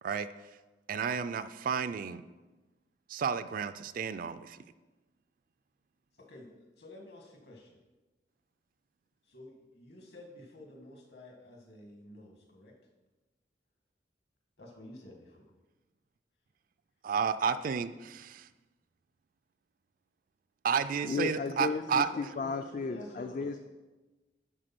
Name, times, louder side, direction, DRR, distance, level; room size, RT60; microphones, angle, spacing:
voice 1, 0.9-2.2 3.1-4.6 17.0-18.5 20.6-22.1, right 6 dB, 50° right, 13 dB, 0.3 m, -31 dB
voice 2, 6.2-7.8 9.3-12.7 14.6-15.5 21.0-22.1 22.4-23.5, left 1 dB, 65° left, 1 dB, 1.8 m, -50 dB
voice 3, 21.0-23.6, left 4 dB, 45° left, 8 dB, 0.3 m, -34 dB
10.0 x 3.9 x 6.0 m, 1.2 s
head